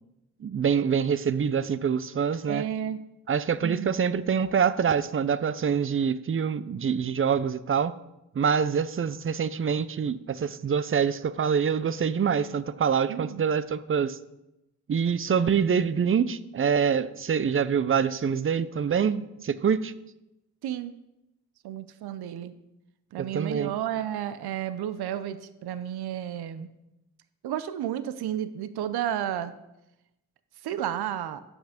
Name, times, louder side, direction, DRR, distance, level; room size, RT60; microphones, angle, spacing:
voice 1, 0.4-2.6 3.3-8.0 8.4-14.2 14.9-19.9 23.3-23.7, right 7 dB, 35° right, 0.5 m, -25 dB
voice 2, 2.5-3.0 3.6-4.0 13.1-13.5 20.6-20.9 21.6-22.5 23.1-26.7 27.4-29.5 30.6-31.4, right 10 dB, 75° right, 0.6 m, -32 dB
8.0 x 6.1 x 5.0 m
supercardioid pair, 50°, 39 cm